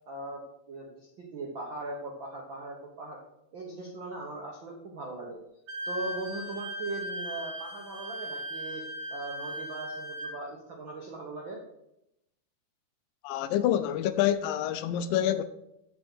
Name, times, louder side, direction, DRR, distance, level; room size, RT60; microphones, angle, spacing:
voice 1, 0.1-0.4 0.7-3.2 3.5-5.4 5.8-8.8 9.1-11.6, right 2 dB, 85° right, 1.0 m, -39 dB
Wind instrument woodwind instrument, 5.7-10.3, equal, 45° right, 1.5 m, -38 dB
voice 2, 13.2-15.4, left 11 dB, 80° left, 2.2 m, -27 dB
7.6 x 5.4 x 6.2 m
omnidirectional pair, 4.1 m